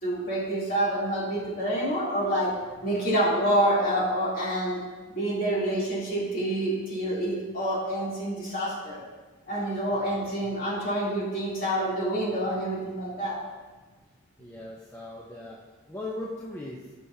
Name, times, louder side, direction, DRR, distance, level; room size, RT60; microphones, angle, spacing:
voice 1, 0.0-2.5 2.8-4.8 5.1-9.0 9.5-13.4, right 1 dB, 40° left, -7 dB, 3.1 m, -27 dB
voice 2, 14.4-15.6 15.9-16.9, left 2 dB, 10° left, -5 dB, 0.8 m, -38 dB
17.0 x 6.2 x 2.8 m, 1.3 s
head